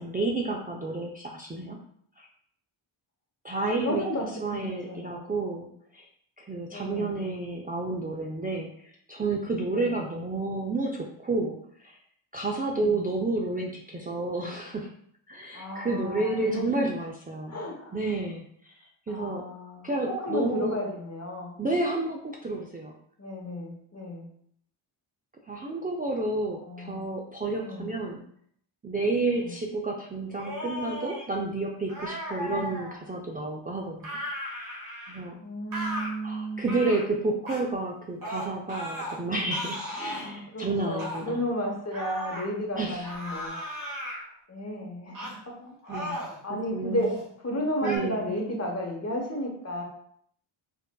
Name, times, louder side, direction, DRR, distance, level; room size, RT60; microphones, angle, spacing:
voice 1, 0.0-1.8 2.2-2.3 3.4-5.7 5.9-6.1 6.4-12.0 12.3-14.9 15.3-17.6 17.9-18.7 19.1-19.4 19.8-20.8 21.6-22.9 25.4-28.2 28.8-34.2 34.5-34.8 35.1-35.3 36.2-41.4 42.8-43.1 45.9-47.1 47.8-48.3, right 2 dB, 20° right, 0 dB, 0.3 m, -30 dB
voice 2, 3.5-5.2 6.7-7.3 9.7-9.9 12.7-13.0 15.5-16.7 17.5-18.0 19.1-21.6 23.2-24.3 26.6-27.0 27.6-27.9 29.3-29.6 32.5-32.7 35.4-36.7 40.1-43.7 44.5-49.8, equal, 30° left, 0 dB, 0.9 m, -33 dB
sound 1, 30.3-31.3 31.9-33.0 34.0-35.3 35.7-36.1 36.7-37.1 37.5-37.6 38.2-39.2 39.5-40.3 41.0-41.2 41.9-42.5 43.0-44.2 45.1-45.4 45.8-46.4 46.9-47.3 47.8-48.0, equal, 40° right, 1.2 m, -36 dB
5.2 x 2.4 x 2.2 m, 0.67 s
wide cardioid pair, 75°, 49 cm